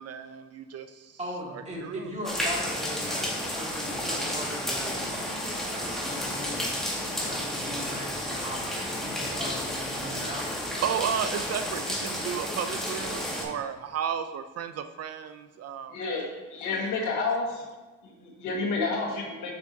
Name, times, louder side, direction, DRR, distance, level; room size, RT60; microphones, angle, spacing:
voice 1, 0.0-1.2 1.5-2.1 10.8-16.0 16.7-16.9, right 8 dB, 55° right, 9 dB, 0.4 m, -33 dB
voice 2, 1.2-6.7 7.2-10.5, equal, 20° right, -3 dB, 2.3 m, -39 dB
sound 1, 2.2-13.4, equal, ahead, 1.8 m, -32 dB
voice 3, 15.9-17.6 18.0-19.5, left 3 dB, 80° left, -1 dB, 1.7 m, -30 dB
7.0 x 7.0 x 2.7 m, 1.3 s
cardioid pair, 90°, 30 cm